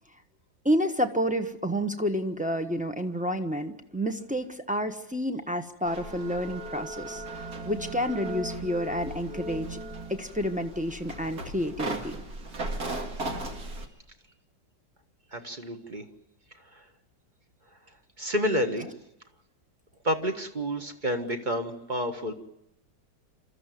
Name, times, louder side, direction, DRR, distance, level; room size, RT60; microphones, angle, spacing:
voice 1, 0.6-9.8 10.1-12.1, equal, 5° right, 7 dB, 1.0 m, -29 dB
sound 1, 5.9-13.9, right 2 dB, 55° right, 2.6 m, -37 dB
voice 2, 15.3-16.0 16.7-16.8 18.2-18.9 20.0-22.3, equal, 25° right, 5 dB, 1.6 m, -29 dB
28.0 x 14.0 x 9.3 m, 0.86 s
omnidirectional pair, 2.0 m